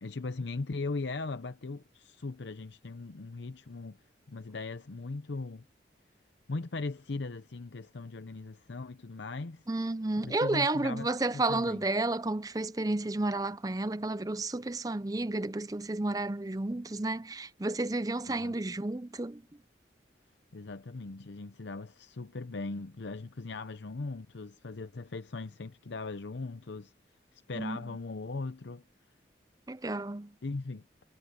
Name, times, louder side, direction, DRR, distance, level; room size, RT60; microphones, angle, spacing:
voice 1, 0.0-4.0 4.3-5.7 6.5-9.7 10.2-11.8 18.3-18.5 20.5-26.9 27.3-28.8 30.4-31.0, left 3 dB, 75° left, 0.7 m, -39 dB
voice 2, 9.7-19.4 27.6-27.8 29.7-30.3, right 2 dB, 20° right, 0.5 m, -31 dB
head